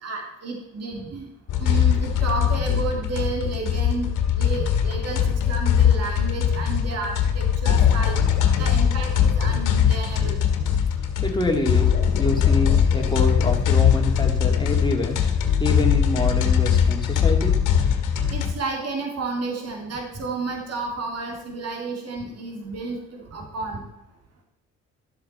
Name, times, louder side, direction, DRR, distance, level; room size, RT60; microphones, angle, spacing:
voice 1, 0.0-1.2 1.6-4.1 4.3-8.2 8.6-10.4 18.3-23.8, right 3 dB, 55° right, 1 dB, 2.6 m, -31 dB
sound 1, 1.5-18.5, left 8 dB, 90° left, 1.6 m, -21 dB
voice 2, 11.2-11.9 12.2-15.2 15.6-17.6, left 2 dB, 15° left, 2 dB, 2.3 m, -26 dB
12.0 x 7.8 x 4.3 m, 0.88 s
cardioid pair, 90°, 30 cm